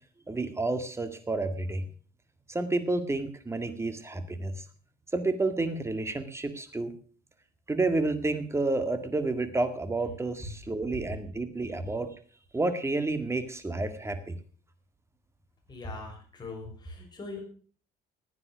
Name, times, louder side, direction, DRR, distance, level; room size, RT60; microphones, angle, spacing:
voice 1, 0.3-1.9 2.5-4.5 5.1-6.9 7.7-12.1 12.5-14.3, right 2 dB, 15° right, 9 dB, 2.0 m, -30 dB
voice 2, 15.7-17.4, left 2 dB, 25° left, 1 dB, 6.3 m, -41 dB
15.5 x 9.7 x 6.3 m, 0.43 s
cardioid pair, 110°, 17 cm